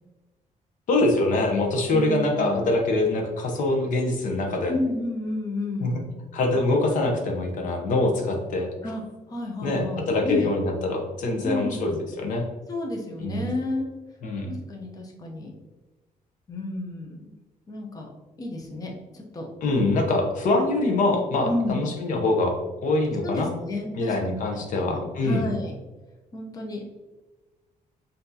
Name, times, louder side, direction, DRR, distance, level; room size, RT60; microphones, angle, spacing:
voice 1, 0.9-4.7 5.8-5.9 6.3-8.7 9.6-12.5 13.2-13.5 14.2-14.5 19.6-23.5 23.9-25.5, left 2 dB, 65° left, 2 dB, 0.8 m, -24 dB
voice 2, 1.9-2.7 4.7-6.1 8.8-9.0 9.3-10.5 11.4-12.1 12.7-13.9 14.5-15.5 16.5-17.3 17.7-18.1 18.4-19.5 21.4-21.9 23.2-24.4 24.8-25.8 26.3-26.8, left 2 dB, 25° left, 0 dB, 0.7 m, -31 dB
5.8 x 2.7 x 2.7 m, 1.2 s
cardioid pair, 145°, 14 cm